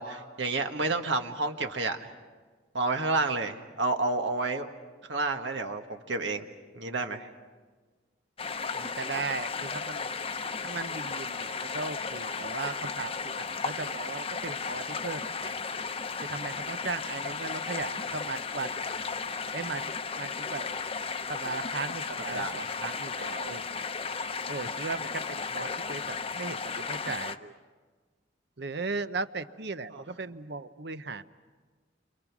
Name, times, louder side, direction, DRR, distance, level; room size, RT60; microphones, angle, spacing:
voice 1, 0.0-2.1 2.7-4.7 5.0-6.5 6.7-7.3 22.3-22.7 25.9-26.0 29.9-30.0, right 3 dB, 80° right, 5 dB, 1.7 m, -30 dB
sound 1, 8.4-27.4, left 5 dB, 30° left, 0.8 m, -35 dB
voice 2, 8.7-10.1 10.6-15.5 16.3-18.9 19.5-19.8 20.2-20.6 21.3-23.8 24.5-27.6 28.6-31.3, right 4 dB, 60° right, 12 dB, 0.8 m, -37 dB
29.5 x 26.5 x 6.1 m, 1.4 s
head